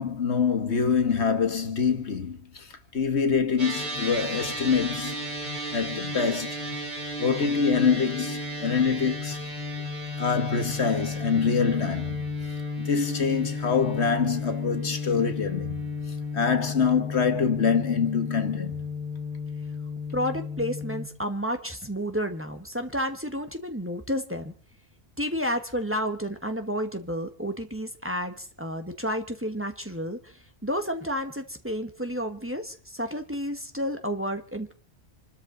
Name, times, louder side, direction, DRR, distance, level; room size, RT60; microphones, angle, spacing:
voice 1, 0.0-5.2 5.7-6.6 7.2-9.5 10.2-12.2 12.8-15.9 16.3-18.8, left 6 dB, 85° left, 1.8 m, -25 dB
sound 1, 3.6-21.1, left 3 dB, 45° right, 3.1 m, -33 dB
voice 2, 20.1-24.5 25.2-34.7, equal, 10° right, 1.4 m, -31 dB
27.5 x 12.5 x 4.0 m
omnidirectional pair, 1.1 m